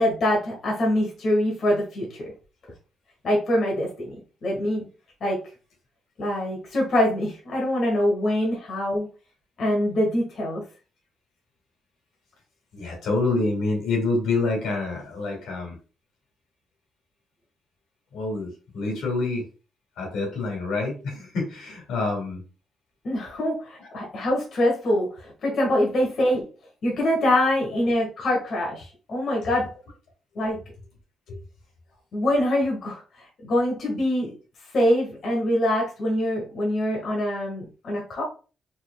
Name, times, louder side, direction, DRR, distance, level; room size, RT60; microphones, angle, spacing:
voice 1, 0.0-2.2 3.2-4.1 4.4-4.9 5.2-5.4 6.2-9.1 9.6-10.6 23.0-26.5 26.8-29.7 30.3-30.6 32.1-34.3 34.7-38.2, left 1 dB, 55° left, -2 dB, 1.6 m, -24 dB
voice 2, 12.7-15.8 18.1-19.4 20.0-22.4 23.8-23.9 31.3-31.4, left 3 dB, 80° left, 1 dB, 2.2 m, -27 dB
4.6 x 3.9 x 2.3 m, 0.35 s
cardioid pair, 90°, 0 cm